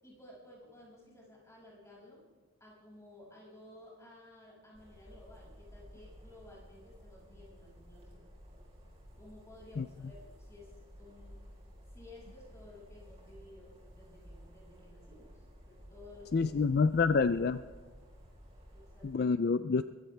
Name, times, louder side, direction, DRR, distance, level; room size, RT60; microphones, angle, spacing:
voice 1, 0.0-2.2 2.6-8.3 9.2-11.4 11.9-16.6 16.9-17.1 18.6-19.1, left 1 dB, 15° left, -5 dB, 6.2 m, -55 dB
sound 1, 4.7-19.2, equal, 30° right, 4.2 m, -54 dB
voice 2, 16.3-17.6 19.0-19.8, left 4 dB, 45° left, 12 dB, 0.4 m, -27 dB
22.0 x 15.5 x 3.4 m, 1.5 s
head